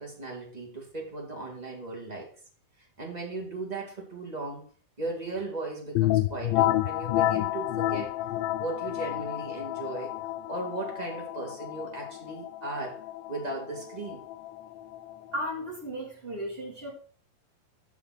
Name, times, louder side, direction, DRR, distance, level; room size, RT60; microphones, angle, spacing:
voice 1, 0.0-2.3 3.0-4.6 5.0-8.1 8.6-10.1 10.5-14.2, right 2 dB, 20° right, -1 dB, 1.2 m, -37 dB
sound 1, 6.0-15.5, left 14 dB, 85° left, 2.4 m, -30 dB
voice 2, 15.3-16.9, equal, 60° right, -2 dB, 0.6 m, -35 dB
7.2 x 6.0 x 5.8 m, 0.41 s
omnidirectional pair, 4.2 m